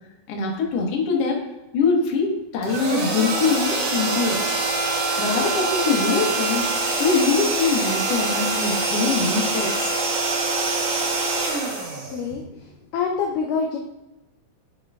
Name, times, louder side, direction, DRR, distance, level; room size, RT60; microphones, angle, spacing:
voice 1, 0.3-1.4 1.7-4.4 5.2-9.9, left 4 dB, 60° left, -1 dB, 1.8 m, -23 dB
sound 1, 2.6-12.6, right 3 dB, 65° right, 1.6 m, -24 dB
voice 2, 12.1-12.4 12.9-13.8, left 5 dB, 80° left, 1 dB, 2.0 m, -25 dB
10.5 x 4.7 x 2.4 m, 1.0 s
omnidirectional pair, 4.3 m